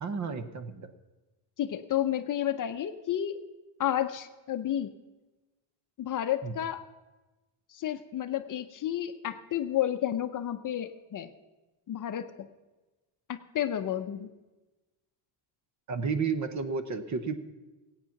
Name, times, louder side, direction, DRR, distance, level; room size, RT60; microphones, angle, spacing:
voice 1, 0.0-0.9 6.4-6.5 15.9-17.3, right 5 dB, 35° right, 10 dB, 0.9 m, -32 dB
voice 2, 1.6-3.4 3.8-4.9 6.0-6.8 7.7-11.3 11.9-12.5 13.3-14.3, left 11 dB, 45° left, 9 dB, 0.6 m, -31 dB
17.0 x 8.9 x 5.8 m, 1.1 s
cardioid pair, 170°, 47 cm